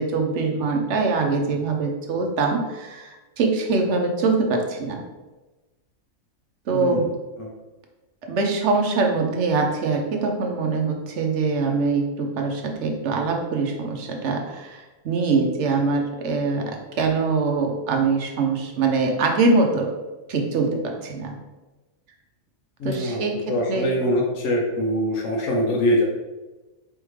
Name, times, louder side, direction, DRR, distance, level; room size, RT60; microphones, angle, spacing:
voice 1, 0.0-5.0 6.7-7.1 8.2-19.9 20.3-21.3 22.8-23.4 23.7-23.9, right 4 dB, 60° right, 2 dB, 1.0 m, -23 dB
voice 2, 6.7-7.1 7.4-7.5 22.8-23.2 23.5-26.0, equal, 65° left, -2 dB, 1.0 m, -23 dB
4.4 x 3.5 x 3.1 m, 1.2 s
omnidirectional pair, 1.4 m